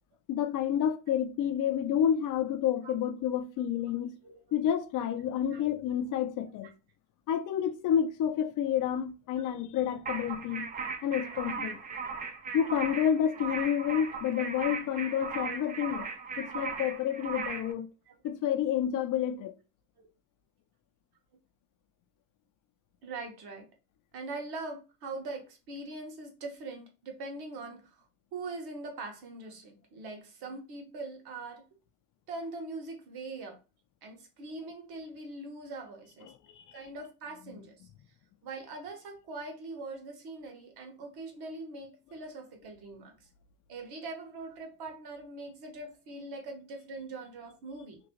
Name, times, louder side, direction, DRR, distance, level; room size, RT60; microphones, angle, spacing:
voice 1, 0.3-4.1 4.5-6.7 7.3-10.7 11.0-11.8 12.5-16.1 16.4-17.9 18.2-19.5 37.5-37.6, left 9 dB, 45° left, 0.6 m, -29 dB
voice 2, 4.2-4.6 5.5-5.7 9.4-9.5 11.6-11.7 14.8-15.0 18.1-18.2 20.0-20.1 23.0-23.7 24.1-28.0 28.3-31.6 32.3-33.6 34.0-36.3 36.7-37.8 38.4-43.3 43.7-48.0, right 3 dB, 55° right, 1.3 m, -42 dB
sound 1, 10.1-17.7, right 5 dB, 20° right, 0.4 m, -38 dB
3.0 x 2.6 x 2.9 m
supercardioid pair, 90°, 44 cm